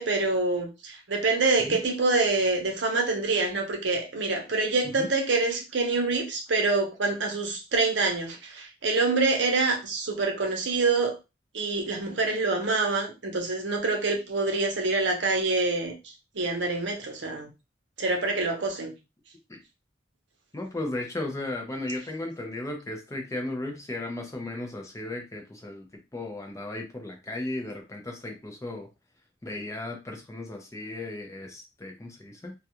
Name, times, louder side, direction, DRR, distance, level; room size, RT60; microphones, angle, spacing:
voice 1, 0.0-11.2 11.5-15.9 16.3-17.5 18.0-18.9, right 3 dB, 65° right, 0.7 m, -26 dB
voice 2, 20.5-25.9 26.1-28.9 29.4-32.5, left 2 dB, 15° left, 0.4 m, -35 dB
2.3 x 2.2 x 2.8 m
head